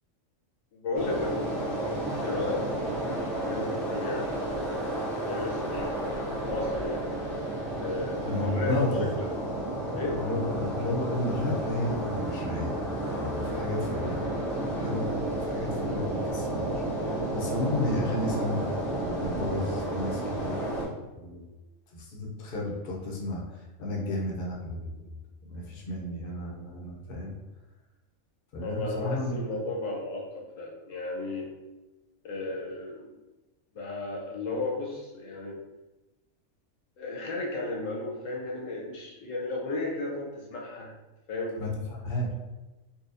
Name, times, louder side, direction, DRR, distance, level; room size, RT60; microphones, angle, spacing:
voice 1, 0.7-1.9 2.2-4.8 5.1-6.1 6.4-7.0 7.8-9.4 9.9-10.2 28.6-31.5 32.2-33.2 33.7-35.6 37.0-40.9 41.3-41.6, left 2 dB, 70° left, -2 dB, 1.0 m, -34 dB
sound 1, 0.9-20.8, right 1 dB, 60° right, 1.5 m, -31 dB
voice 2, 8.2-9.1 10.1-14.2 14.7-15.1 15.4-20.6 21.1-21.5 21.9-23.4 23.8-25.1 25.4-27.3 28.5-29.4 41.6-41.7 42.0-42.3, left 1 dB, 50° left, -2 dB, 0.7 m, -32 dB
4.0 x 2.3 x 2.6 m, 1.1 s
omnidirectional pair, 1.4 m